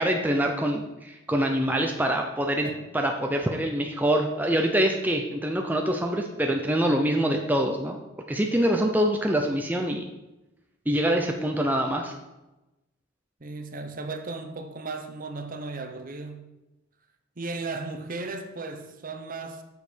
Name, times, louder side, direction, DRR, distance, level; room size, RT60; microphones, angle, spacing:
voice 1, 0.0-2.7 2.9-8.0 8.3-10.1 10.9-12.1, right 1 dB, 10° right, 0.5 m, -25 dB
voice 2, 13.4-16.5 17.4-19.6, right 3 dB, 40° right, 0.8 m, -36 dB
8.0 x 6.5 x 5.1 m
head